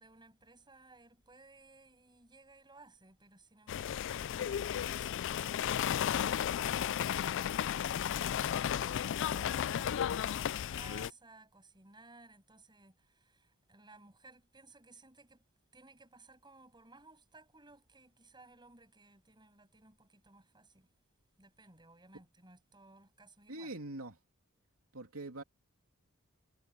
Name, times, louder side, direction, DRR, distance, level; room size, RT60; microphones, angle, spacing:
voice 1, 0.0-15.4 15.7-20.9 21.4-23.8, right 3 dB, 20° right, 7.4 m, -59 dB
sound 1, 3.7-11.1, left 9 dB, 60° left, 0.3 m, -34 dB
voice 2, 23.5-24.2 24.9-25.4, right 2 dB, 80° right, 2.9 m, -43 dB
head